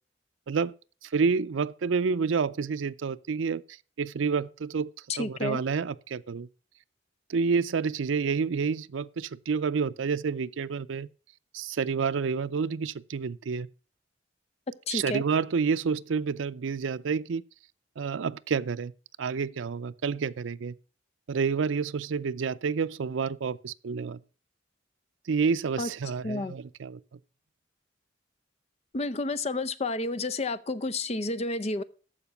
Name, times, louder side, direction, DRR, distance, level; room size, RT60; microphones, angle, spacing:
voice 1, 1.0-4.9 5.2-6.5 7.3-11.1 11.5-13.7 14.9-17.4 18.0-18.9 19.2-20.7 21.3-24.2 25.3-27.0, right 5 dB, 90° right, 0.5 m, -29 dB
voice 2, 5.1-5.6 14.9-15.2 25.8-25.9 26.2-26.5 28.9-31.8, left 2 dB, 35° left, 0.6 m, -30 dB
14.0 x 5.1 x 5.9 m
head